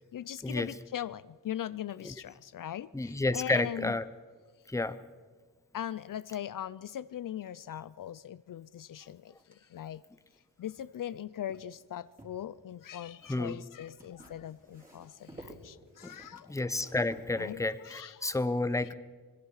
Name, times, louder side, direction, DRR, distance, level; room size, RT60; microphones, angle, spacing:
voice 1, 0.1-4.0 5.7-10.0 10.6-16.6 17.4-18.3, left 11 dB, 65° left, 17 dB, 0.5 m, -40 dB
voice 2, 2.9-4.1 4.7-5.0 13.3-13.6 16.0-16.2 16.5-18.9, left 2 dB, 10° left, 13 dB, 0.7 m, -31 dB
sound 1, 8.7-11.1 11.5-12.4 13.8-17.9, right 1 dB, 25° right, 3.9 m, -54 dB
26.0 x 21.0 x 4.8 m, 1.4 s
wide cardioid pair, 135°, 35 cm